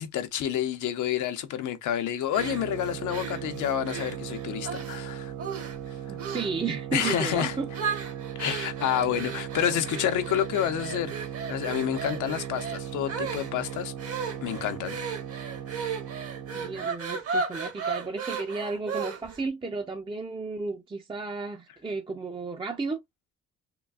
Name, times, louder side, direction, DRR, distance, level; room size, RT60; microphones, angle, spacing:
voice 1, 0.0-5.3 6.9-7.5 8.3-11.1 11.5-13.9 14.4-15.0, left 10 dB, 80° left, 0.7 m, -29 dB
sound 1, 2.3-5.0 5.4-5.9 6.2-6.6 7.0-7.3 7.7-19.4, right 5 dB, 50° right, 1.0 m, -35 dB
sound 2, 2.4-16.9, right 9 dB, 80° right, 0.7 m, -38 dB
voice 2, 6.1-8.1 16.5-23.0, right 4 dB, 15° right, 0.4 m, -33 dB
3.8 x 2.3 x 2.3 m
cardioid pair, 90°, 30 cm